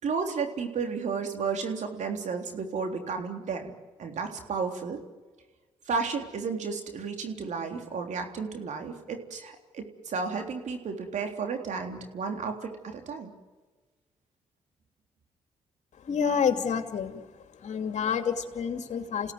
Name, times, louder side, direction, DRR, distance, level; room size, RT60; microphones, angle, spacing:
voice 1, 0.0-3.7 4.0-5.0 5.9-13.3, right 5 dB, 65° right, 4 dB, 3.6 m, -33 dB
voice 2, 16.0-17.2 17.6-19.3, left 7 dB, 60° left, 7 dB, 2.7 m, -28 dB
28.5 x 17.0 x 9.5 m, 1.3 s
supercardioid pair, 55°, 13 cm